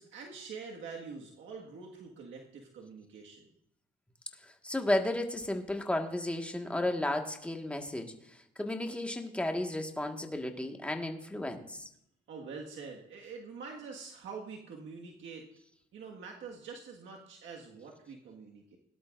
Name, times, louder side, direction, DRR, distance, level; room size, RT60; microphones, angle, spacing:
voice 1, 0.0-3.5 12.3-15.5 15.9-18.8, right 5 dB, 75° right, -1 dB, 1.7 m, -45 dB
voice 2, 4.4-8.1 8.6-11.9, left 1 dB, 5° left, 3 dB, 1.6 m, -33 dB
18.0 x 12.0 x 2.5 m, 0.72 s
cardioid pair, 90°, 20 cm